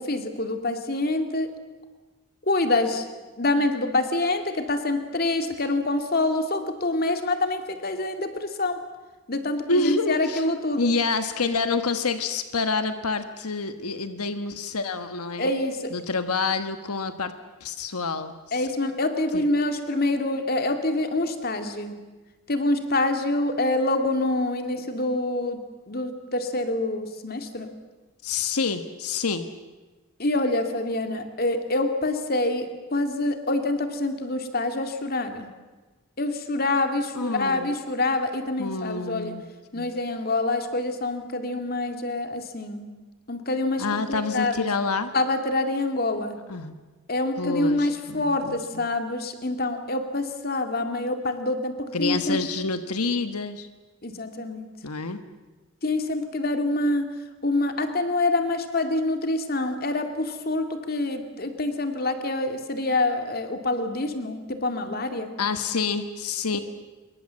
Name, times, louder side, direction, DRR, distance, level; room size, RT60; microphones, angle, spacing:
voice 1, 0.0-1.5 2.4-3.1 3.4-8.9 9.3-10.9 15.4-15.9 18.5-22.0 22.5-27.7 30.2-35.5 36.2-39.3 39.7-42.9 43.3-44.7 45.1-46.4 47.1-52.4 54.0-54.7 55.8-57.2 57.4-65.3, left 2 dB, 45° left, 6 dB, 2.3 m, -26 dB
voice 2, 9.7-10.4 10.8-15.5 15.9-17.3 17.6-18.6 19.3-19.4 28.2-29.5 37.1-37.7 38.6-39.4 39.7-39.9 43.8-45.1 46.5-46.8 47.4-48.6 51.9-53.7 54.8-55.2 65.4-66.6, left 4 dB, 90° left, 9 dB, 1.4 m, -27 dB
26.5 x 23.0 x 7.5 m, 1.2 s
head